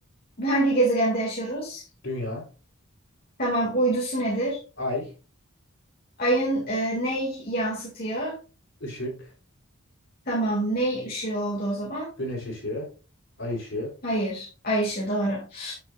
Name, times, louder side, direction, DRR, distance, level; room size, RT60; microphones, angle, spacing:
voice 1, 0.4-1.8 3.4-4.6 6.2-8.4 10.3-12.1 14.0-15.7, right 1 dB, 45° left, -3 dB, 2.2 m, -26 dB
voice 2, 2.0-2.5 4.8-5.1 8.8-9.3 12.2-12.9 13.4-14.0, left 1 dB, 60° left, -1 dB, 4.0 m, -31 dB
9.4 x 8.3 x 2.5 m, 0.33 s
head